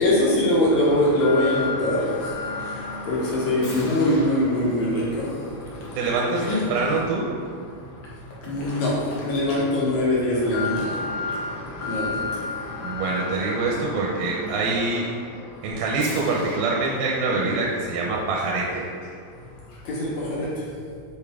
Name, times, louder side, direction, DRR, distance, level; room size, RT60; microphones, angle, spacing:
voice 1, 0.0-5.4 5.9-6.0 6.3-6.6 8.4-11.0 11.8-12.4 17.3-17.6 19.4-19.5 19.8-20.9, left 1 dB, 60° left, -6 dB, 2.3 m, -23 dB
Alarm, 0.7-19.4 19.7-19.8 20.4-20.5, left 3 dB, 75° left, 1.2 m, -35 dB
voice 2, 6.0-7.3 12.8-15.1 15.6-18.9, right 3 dB, 85° right, -2 dB, 2.5 m, -25 dB
6.8 x 5.3 x 3.6 m, 2.1 s
omnidirectional pair, 4.2 m